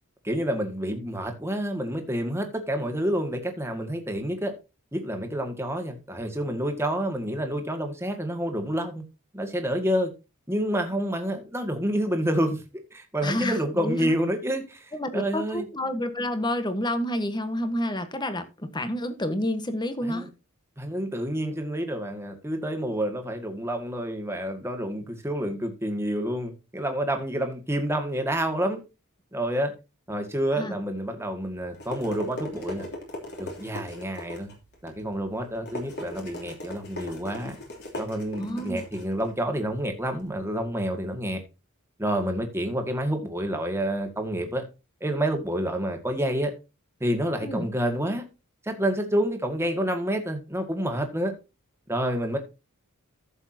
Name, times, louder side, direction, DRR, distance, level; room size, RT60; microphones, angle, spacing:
voice 1, 0.2-4.5 4.9-9.0 9.3-10.1 10.5-12.6 12.9-15.7 20.0-20.3 20.8-28.8 29.3-29.7 30.1-32.9 33.4-34.5 34.8-37.6 38.0-41.4 42.0-44.6 45.0-46.5 47.0-48.3 48.6-51.3 51.9-52.4, equal, 10° right, 1.9 m, -28 dB
voice 2, 13.2-14.1 14.9-20.3 30.6-30.8 38.4-38.8 47.4-47.7, left 1 dB, 20° left, 1.3 m, -29 dB
sound 1, 31.4-40.3, left 1 dB, 50° left, 3.2 m, -40 dB
14.5 x 7.1 x 2.8 m
head